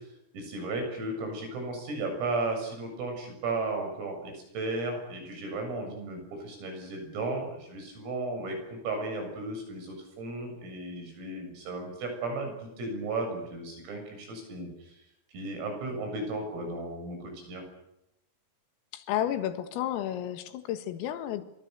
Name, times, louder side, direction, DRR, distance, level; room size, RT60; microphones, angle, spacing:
voice 1, 0.3-14.9 15.3-17.6, right 2 dB, 85° right, 4 dB, 10.0 m, -35 dB
voice 2, 18.9-21.4, left 11 dB, 90° left, 9 dB, 4.3 m, -32 dB
29.0 x 24.5 x 6.9 m, 0.83 s
omnidirectional pair, 5.8 m